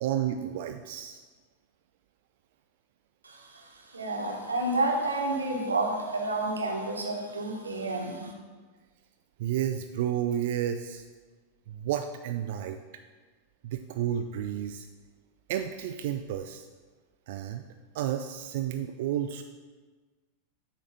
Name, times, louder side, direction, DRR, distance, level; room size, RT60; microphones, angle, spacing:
voice 1, 0.0-1.2 9.4-11.0 11.7-12.8 13.6-14.9 15.5-16.7 17.3-17.6 17.9-19.4, right 10 dB, 50° right, 7 dB, 0.3 m, -31 dB
voice 2, 3.2-8.3, right 2 dB, 75° right, 0 dB, 1.1 m, -30 dB
8.4 x 3.1 x 5.3 m, 1.4 s
figure-of-eight pair, 90°, 0 cm